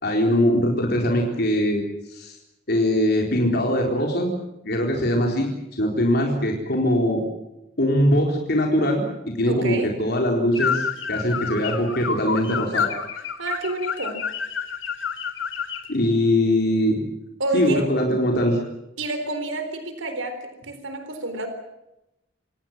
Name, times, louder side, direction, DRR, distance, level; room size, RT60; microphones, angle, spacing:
voice 1, 0.0-1.8 2.1-2.3 2.7-4.3 4.6-5.5 5.8-7.2 7.8-9.0 9.4-12.9 15.9-17.0 17.5-18.6, left 1 dB, 55° left, 1 dB, 4.1 m, -21 dB
voice 2, 9.5-9.9 13.4-14.2 17.4-17.9 19.0-21.5, right 2 dB, 85° right, 8 dB, 4.0 m, -29 dB
sound 1, 10.5-15.9, left 6 dB, 75° left, 3.0 m, -28 dB
27.0 x 18.5 x 7.5 m, 0.90 s
head